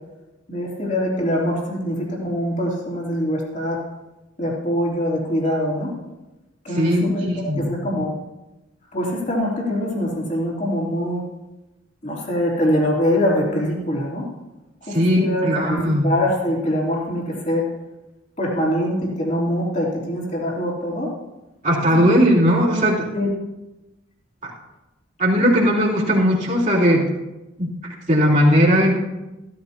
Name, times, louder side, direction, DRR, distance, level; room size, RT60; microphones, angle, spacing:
voice 1, 0.5-3.8 4.4-5.9 6.6-8.1 8.9-11.2 12.0-14.3 14.9-17.7 18.4-21.1 21.9-22.1 23.1-23.3, equal, 35° left, -3 dB, 3.2 m, -23 dB
voice 2, 6.7-7.7 14.9-16.1 21.6-23.1 24.4-24.5 25.2-27.1 27.6-27.7 28.1-28.9, equal, 40° right, -6 dB, 3.2 m, -18 dB
15.5 x 13.5 x 2.9 m, 1.0 s
head